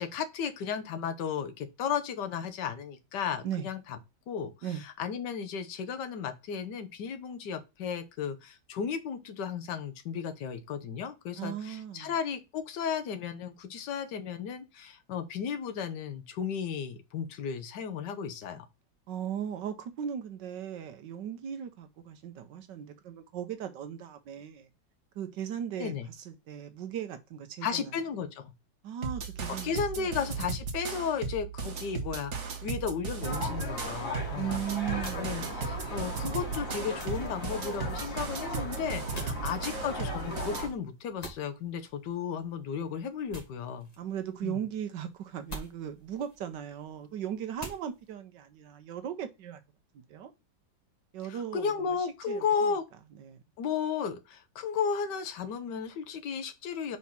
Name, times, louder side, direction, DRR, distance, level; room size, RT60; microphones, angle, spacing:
voice 1, 0.0-4.0 4.3-4.5 4.8-18.6 25.8-26.1 27.6-28.5 29.5-34.6 35.2-43.9 44.4-44.6 51.3-52.8 53.6-57.0, left 6 dB, 70° left, 1.5 m, -34 dB
voice 2, 11.4-12.1 19.1-24.7 25.1-27.9 28.8-30.1 34.3-35.3 39.3-39.5 44.0-49.6 49.9-50.3 51.1-52.5 53.2-53.4, right 9 dB, 75° right, 1.4 m, -38 dB
sound 1, 29.0-40.7, right 5 dB, 45° right, 1.3 m, -36 dB
sound 2, 33.2-40.7, left 1 dB, 50° left, 2.5 m, -38 dB
sound 3, 34.3-48.1, equal, 20° left, 1.6 m, -50 dB
4.7 x 4.2 x 5.6 m
omnidirectional pair, 2.0 m